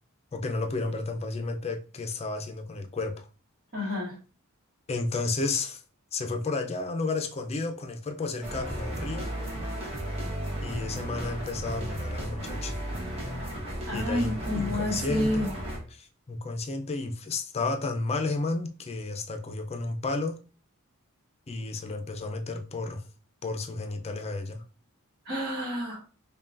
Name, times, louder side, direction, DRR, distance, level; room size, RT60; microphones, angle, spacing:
voice 1, 0.3-3.3 4.9-5.8 6.1-9.3 10.6-12.8 13.9-15.5 15.9-20.4 21.5-23.0 23.4-24.6, left 3 dB, 30° left, 0.5 m, -32 dB
voice 2, 3.7-4.2 13.9-15.5 25.2-26.0, left 1 dB, 50° right, 1.3 m, -29 dB
sound 1, 8.4-15.8, right 1 dB, 30° right, 1.0 m, -34 dB
5.4 x 2.3 x 2.5 m
head